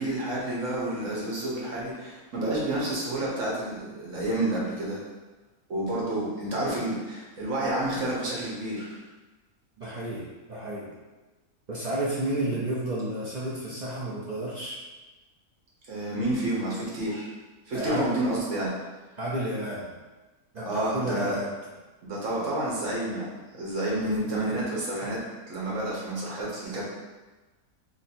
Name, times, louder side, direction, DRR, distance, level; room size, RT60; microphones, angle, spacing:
voice 1, 0.0-5.0 5.7-9.0 15.9-17.3 17.7-18.7 20.6-21.4 22.0-25.2 25.5-26.8, right 1 dB, 60° right, -5 dB, 1.4 m, -29 dB
voice 2, 9.8-10.9 11.7-14.8 17.7-18.1 19.2-19.9 20.5-21.5, right 1 dB, 40° right, -7 dB, 0.6 m, -31 dB
3.1 x 2.8 x 4.2 m, 1.2 s
omnidirectional pair, 1.5 m